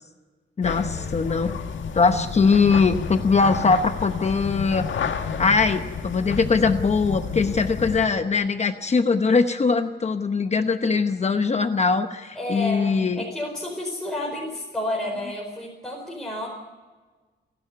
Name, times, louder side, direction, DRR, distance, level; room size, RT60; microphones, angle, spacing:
sound 1, 0.6-8.1, left 6 dB, 80° left, 1.8 m, -31 dB
voice 1, 0.6-1.6 1.9-4.8 5.4-13.2, left 4 dB, 35° left, 8 dB, 0.9 m, -21 dB
voice 2, 12.3-16.5, left 1 dB, 5° left, -3 dB, 4.9 m, -30 dB
29.5 x 11.5 x 9.4 m, 1.3 s
wide cardioid pair, 160°, 19 cm